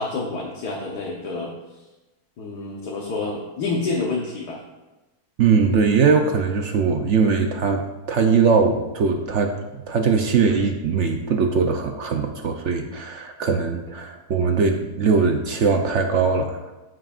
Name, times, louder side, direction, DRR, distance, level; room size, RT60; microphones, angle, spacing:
voice 1, 0.0-1.5 2.4-4.6, left 3 dB, 80° left, -2 dB, 1.6 m, -28 dB
voice 2, 5.4-16.7, right 5 dB, 60° right, 5 dB, 0.8 m, -21 dB
14.0 x 6.2 x 2.5 m, 1.1 s
omnidirectional pair, 1.7 m